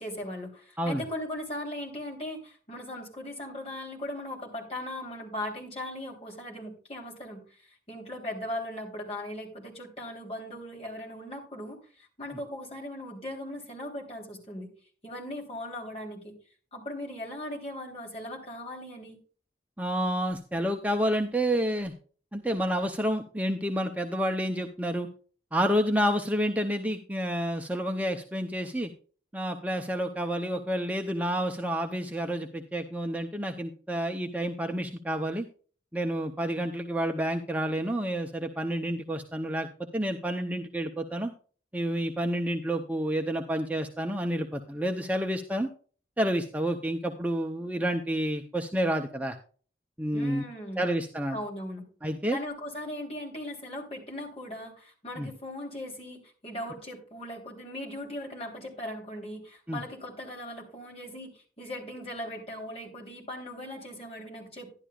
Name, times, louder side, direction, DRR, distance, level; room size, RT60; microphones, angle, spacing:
voice 1, 0.0-7.4 7.9-14.7 15.0-16.3 16.7-19.2 50.1-50.9 51.3-51.8 52.3-64.8, left 1 dB, 35° left, 0 dB, 3.4 m, -39 dB
voice 2, 19.8-21.9 22.3-25.1 25.5-28.9 29.3-35.5 35.9-39.7 39.9-41.3 41.7-45.7 46.2-49.4 50.0-50.4 50.8-51.4 52.0-52.4 55.2-55.3 59.7-59.8, equal, 10° right, 4 dB, 0.6 m, -29 dB
11.5 x 11.0 x 2.4 m, 0.40 s
head